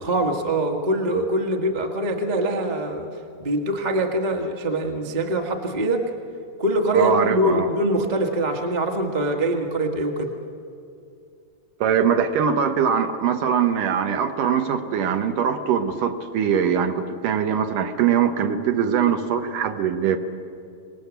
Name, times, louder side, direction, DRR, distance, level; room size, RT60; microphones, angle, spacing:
voice 1, 0.0-3.1 3.4-6.0 6.6-10.3, right 1 dB, 25° right, 3 dB, 0.9 m, -23 dB
voice 2, 6.9-7.7 11.8-20.2, right 7 dB, 70° right, 7 dB, 2.6 m, -22 dB
26.0 x 19.5 x 8.2 m, 2.4 s
omnidirectional pair, 4.0 m